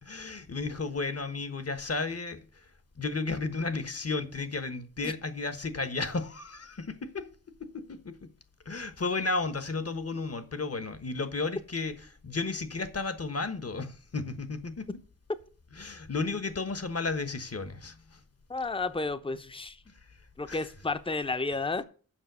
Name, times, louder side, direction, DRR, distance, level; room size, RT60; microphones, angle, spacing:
voice 1, 0.0-2.4 3.0-7.3 7.6-8.3 8.6-14.9 15.7-18.2 20.5-20.7, left 3 dB, 45° left, 1.2 m, -33 dB
voice 2, 18.5-19.8 20.4-21.8, left 3 dB, 15° left, 0.7 m, -32 dB
7.3 x 5.7 x 6.8 m
wide cardioid pair, 60°, 33 cm